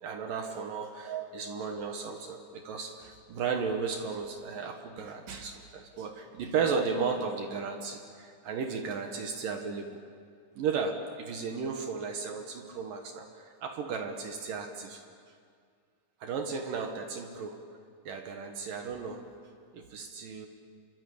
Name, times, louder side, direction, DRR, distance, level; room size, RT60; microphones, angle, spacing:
voice 1, 0.0-10.0 10.6-15.0 16.2-17.6 18.1-19.3 19.7-20.5, right 5 dB, 75° right, 4 dB, 2.0 m, -34 dB
27.0 x 24.0 x 8.6 m, 2.2 s
omnidirectional pair, 6.0 m